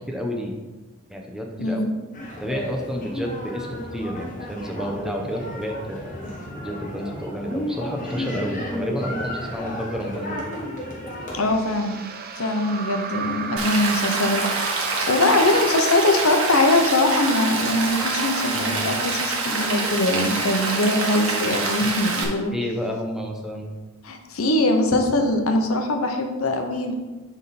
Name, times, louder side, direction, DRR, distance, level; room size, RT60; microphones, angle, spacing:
voice 1, 0.1-0.6 1.1-1.8 2.4-6.1 6.6-10.4 18.5-18.8 22.5-23.7, equal, 5° right, 1 dB, 0.9 m, -30 dB
voice 2, 1.6-1.9 11.3-12.0 12.3-14.5 14.8-22.5 24.0-27.0, left 2 dB, 90° left, 4 dB, 1.0 m, -22 dB
sound 1, 2.1-11.5, left 1 dB, 40° left, 1.7 m, -33 dB
sound 2, 11.4-18.6, right 5 dB, 45° right, 0.6 m, -35 dB
Rain, 13.6-22.2, right 3 dB, 75° right, 1.5 m, -26 dB
11.0 x 3.6 x 4.3 m, 1.2 s
head